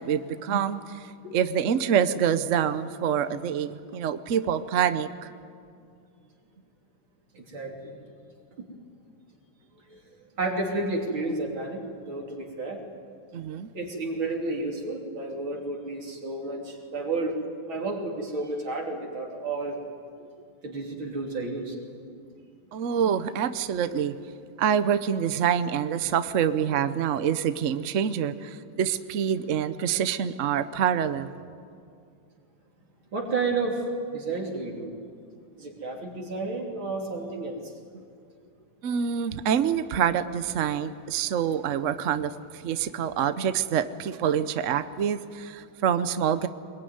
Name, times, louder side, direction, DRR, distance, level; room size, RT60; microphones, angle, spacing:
voice 1, 0.0-5.3 13.3-13.7 22.7-24.2 24.6-31.3 38.8-46.5, right 8 dB, 55° right, 12 dB, 0.8 m, -26 dB
voice 2, 7.3-8.0 8.6-8.7 9.9-10.0 10.4-12.8 13.7-17.4 17.7-19.8 20.6-21.8 33.1-33.8 34.1-35.0 35.6-37.6, right 3 dB, 75° right, 0 dB, 4.1 m, -31 dB
22.5 x 21.5 x 9.5 m, 2.3 s
omnidirectional pair, 2.2 m